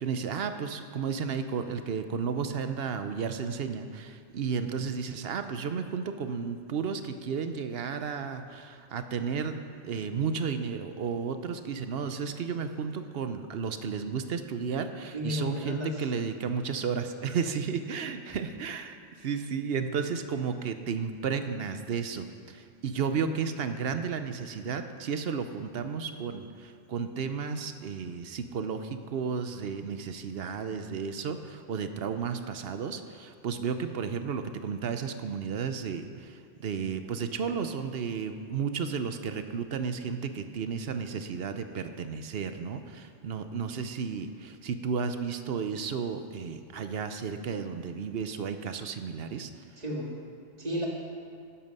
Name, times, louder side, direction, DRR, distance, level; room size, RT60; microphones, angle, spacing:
voice 1, 0.0-49.5, right 6 dB, 60° right, 9 dB, 0.8 m, -33 dB
voice 2, 15.1-16.1 22.9-23.3 49.8-50.1 50.6-50.9, equal, 35° right, -2 dB, 2.0 m, -33 dB
12.5 x 8.7 x 5.4 m, 2.2 s
omnidirectional pair, 1.3 m